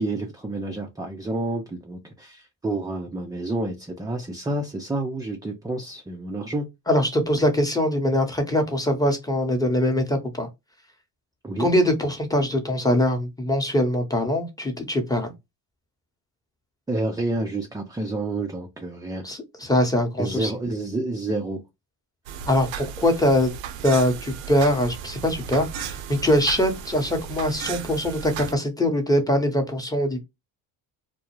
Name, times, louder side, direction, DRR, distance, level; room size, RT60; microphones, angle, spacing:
voice 1, 0.0-6.7 11.4-11.7 16.9-19.2 20.2-21.6, right 2 dB, 10° right, 0.4 m, -29 dB
voice 2, 6.9-10.5 11.6-15.3 19.2-20.5 22.5-23.5 23.8-30.2, left 1 dB, 5° left, 0.9 m, -22 dB
sound 1, 22.3-28.5, right 8 dB, 65° right, 0.6 m, -35 dB
2.2 x 2.1 x 3.0 m
hypercardioid pair, 60°, 50 cm